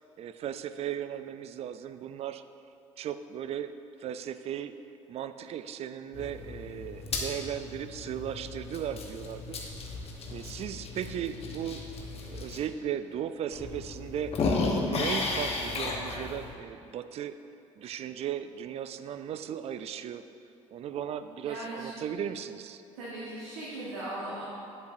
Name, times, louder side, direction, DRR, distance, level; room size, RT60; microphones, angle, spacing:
voice 1, 0.2-2.4 3.0-4.7 5.1-9.6 10.3-11.8 12.2-14.5 14.8-17.4 17.8-20.2 20.7-22.8, right 9 dB, 40° right, 11 dB, 0.4 m, -36 dB
sound 1, 6.1-12.6 13.1-13.2 13.5-16.5, left 3 dB, 40° left, 1.1 m, -34 dB
voice 2, 21.4-21.9 22.9-24.4, right 1 dB, 70° right, -7 dB, 1.3 m, -38 dB
8.1 x 8.1 x 2.6 m, 2.7 s
figure-of-eight pair, 60°, 16 cm